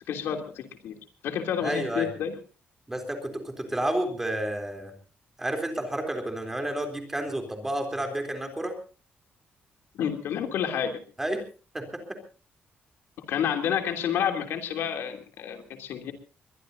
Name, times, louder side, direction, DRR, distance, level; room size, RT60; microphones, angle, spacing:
voice 1, 0.1-1.0 1.2-2.4 9.9-11.0 13.3-16.1, left 8 dB, 85° left, 5 dB, 3.1 m, -29 dB
voice 2, 1.6-2.1 2.9-4.9 5.4-8.7 11.2-11.5 11.7-12.2, right 1 dB, 10° right, 4 dB, 3.6 m, -30 dB
22.5 x 21.5 x 2.8 m, 0.36 s
cardioid pair, 175°, 4 cm